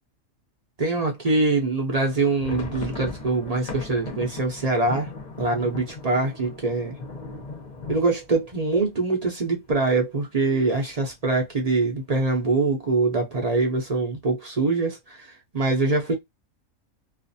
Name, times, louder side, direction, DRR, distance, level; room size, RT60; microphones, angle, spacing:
voice 1, 0.8-5.1 5.4-7.0 7.9-16.1, right 3 dB, 40° right, 0.5 m, -24 dB
sound 1, 2.1-9.8 10.1-10.2 10.5-10.7 11.2-11.7, left 3 dB, 40° left, 0.7 m, -38 dB
2.4 x 2.4 x 2.6 m
omnidirectional pair, 1.5 m